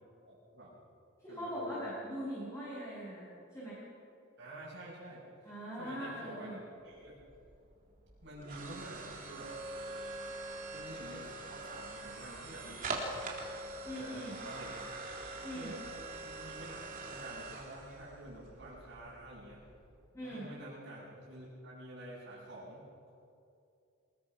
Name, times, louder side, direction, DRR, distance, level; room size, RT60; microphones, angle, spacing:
voice 1, 0.3-0.8 1.3-1.8 4.4-5.3 5.8-7.2 8.2-9.5 10.7-13.3 13.9-14.8 15.5-15.8 16.2-19.6 20.2-22.9, right 1 dB, 60° right, -8 dB, 6.6 m, -49 dB
voice 2, 1.2-3.3 3.5-3.8 5.4-6.6 13.8-14.4 15.4-15.8 20.1-20.5, equal, 15° left, -8 dB, 6.8 m, -41 dB
sound 1, 6.9-20.0, right 2 dB, 45° right, 3.7 m, -44 dB
26.0 x 21.5 x 6.1 m, 2.6 s
head